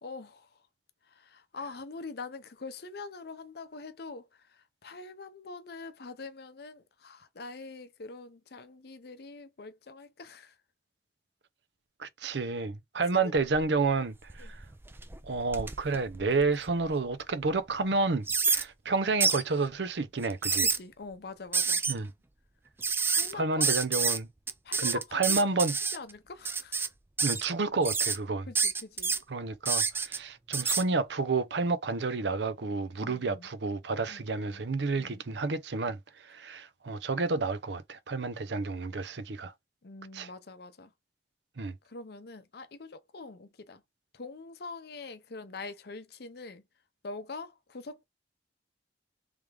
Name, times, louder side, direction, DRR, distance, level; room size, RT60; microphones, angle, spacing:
voice 1, 0.0-0.6 1.0-10.6 13.1-13.3 14.4-14.5 20.6-21.8 23.0-23.7 24.6-25.4 25.9-26.9 28.5-29.1 33.0-33.5 34.1-34.7 34.9-35.2 39.8-40.9 41.8-43.8 44.1-46.6 47.0-48.0, left 3 dB, 60° left, 0.7 m, -44 dB
voice 2, 12.0-14.6 15.3-20.7 21.9-22.1 23.3-24.3 24.8-25.7 27.2-28.5 29.3-36.0 36.3-39.5 40.1-40.3 41.6-41.7, right 3 dB, 75° right, 0.6 m, -30 dB
sound 1, 13.4-13.9 14.3-16.9 17.4-17.5 18.3-18.6 19.2-19.4 20.2-20.8 21.5-21.9 22.8-23.3 23.6-24.2 24.5-26.0 26.4-26.9 27.2-27.5 27.8-28.2 28.5-29.2 29.6-30.2 30.5-30.8, right 5 dB, 15° right, 0.3 m, -28 dB
3.5 x 3.3 x 3.3 m
head